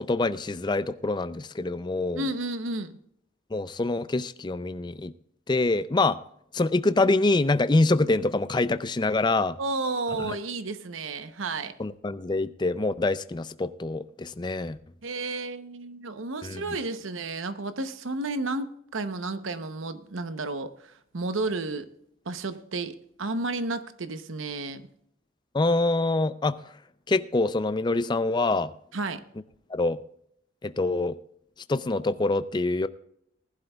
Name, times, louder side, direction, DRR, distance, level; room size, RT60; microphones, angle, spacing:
voice 1, 0.0-2.3 3.5-5.1 5.5-6.2 6.5-9.6 10.2-10.4 11.8-14.8 16.4-16.6 25.5-26.6 27.1-28.7 29.7-30.0 30.6-31.2 31.7-32.9, left 2 dB, 20° left, 0.4 m, -25 dB
voice 2, 2.1-2.9 9.6-11.7 15.0-21.9 22.3-24.8 28.9-29.2, right 2 dB, 80° right, 0.9 m, -32 dB
19.5 x 11.5 x 2.3 m
head